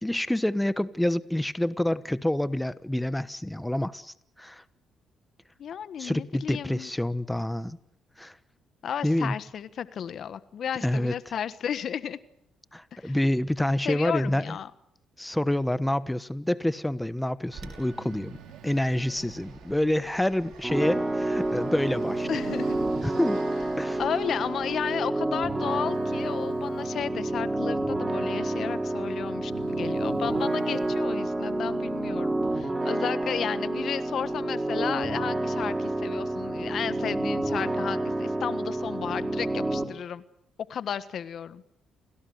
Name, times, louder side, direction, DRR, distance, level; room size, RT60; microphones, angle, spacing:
voice 1, 0.0-4.6 6.0-7.8 8.2-8.4 9.0-9.4 10.8-11.1 12.7-14.6 15.2-18.4 18.6-22.3 23.0-23.4 23.8-24.0, left 1 dB, 10° left, 15 dB, 1.1 m, -27 dB
voice 2, 5.6-6.9 8.8-12.2 12.9-13.2 13.8-14.7 22.3-22.8 24.0-40.2 40.7-41.6, left 8 dB, 60° left, 14 dB, 1.3 m, -33 dB
Fixed-wing aircraft airplane, 17.5-25.3, right 6 dB, 70° right, 5.4 m, -46 dB
Breathing, 17.9-19.5 21.5-23.1 24.5-24.6 25.5-27.0 28.6-28.7 29.3-31.1, right 9 dB, 90° right, 2.2 m, -48 dB
sound 1, 20.6-39.8, right 2 dB, 20° right, 4.2 m, -29 dB
28.5 x 18.5 x 7.9 m, 0.78 s
supercardioid pair, 55°, 0 cm